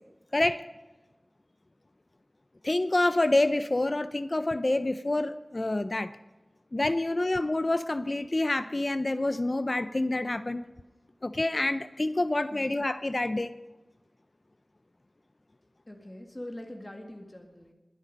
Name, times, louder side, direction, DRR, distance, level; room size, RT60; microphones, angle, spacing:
voice 1, 0.3-0.6 2.6-6.1 6.7-10.7 11.2-13.5, left 2 dB, 45° left, 12 dB, 0.5 m, -27 dB
voice 2, 15.9-17.7, left 1 dB, 30° left, 2 dB, 2.0 m, -43 dB
21.5 x 8.2 x 5.3 m, 1.1 s
wide cardioid pair, 45°, 0 cm